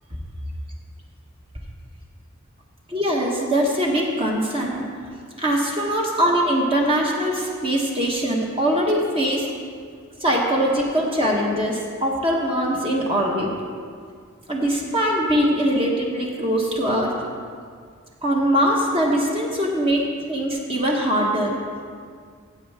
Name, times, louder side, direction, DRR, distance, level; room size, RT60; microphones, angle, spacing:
voice 1, 2.9-4.8 5.4-9.5 10.2-13.5 14.5-17.1 18.2-21.6, equal, 25° right, -2 dB, 1.2 m, -22 dB
15.5 x 8.0 x 3.5 m, 2.1 s
head